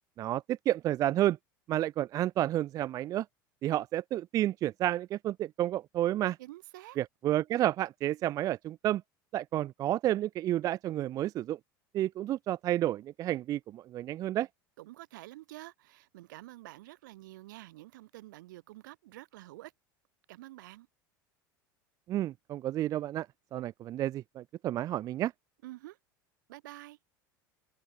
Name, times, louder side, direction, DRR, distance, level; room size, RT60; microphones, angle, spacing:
voice 1, 0.2-1.4 1.7-3.2 3.6-6.4 7.0-9.0 9.3-11.6 11.9-14.5 22.1-23.3 23.5-25.3, right 13 dB, 30° right, 0.3 m, -30 dB
voice 2, 6.4-7.0 14.8-19.7 20.3-20.9 25.6-26.0 26.5-27.0, right 17 dB, 60° right, 1.5 m, -48 dB
open air
figure-of-eight pair, 75°, 11 cm